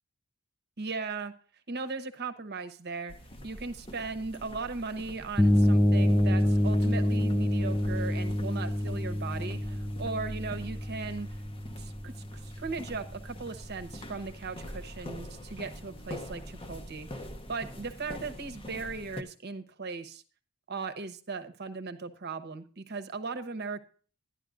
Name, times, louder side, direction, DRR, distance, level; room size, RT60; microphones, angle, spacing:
voice 1, 0.8-1.3 1.7-3.1 3.4-11.3 11.8-20.2 20.7-23.8, right 4 dB, 50° right, 9 dB, 1.0 m, -38 dB
sound 1, 3.1-19.2, equal, 25° left, 0.9 m, -45 dB
sound 2, 5.4-13.1, equal, 5° left, 0.6 m, -27 dB
12.0 x 11.0 x 2.5 m, 0.40 s
head